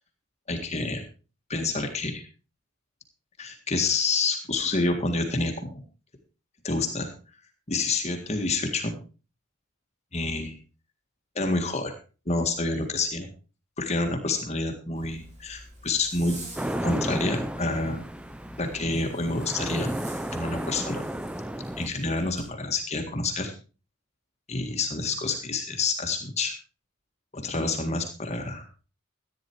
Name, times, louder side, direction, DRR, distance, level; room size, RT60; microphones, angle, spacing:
voice 1, 0.5-1.0 1.5-2.3 3.4-5.7 6.6-7.1 7.7-8.9 10.1-10.6 11.4-11.9 12.3-13.3 13.8-16.4 16.8-18.0 18.6-19.9 20.3-21.0 21.8-23.5 24.5-26.5 27.3-28.7, left 3 dB, 30° left, 4 dB, 1.9 m, -28 dB
Zipper (clothing), 15.0-22.5, right 1 dB, 35° right, 4.5 m, -47 dB
sound 1, 16.6-21.9, right 1 dB, 5° right, 0.5 m, -33 dB
14.5 x 9.7 x 4.6 m, 0.35 s
head